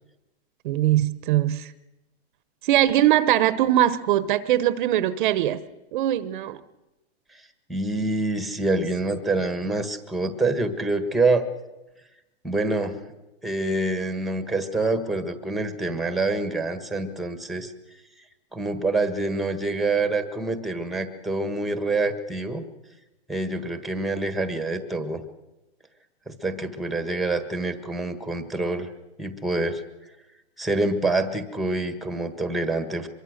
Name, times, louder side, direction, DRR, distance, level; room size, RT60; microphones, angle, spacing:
voice 1, 0.6-1.7 2.6-5.6 5.9-6.6, right 13 dB, 50° right, 1.0 m, -21 dB
voice 2, 7.7-11.5 12.4-13.0 13.4-17.7 18.5-22.6 23.3-25.2 26.3-28.9 29.2-29.8 30.6-33.1, right 2 dB, ahead, 1.5 m, -26 dB
24.5 x 22.5 x 6.5 m
hypercardioid pair, 150°, 33 cm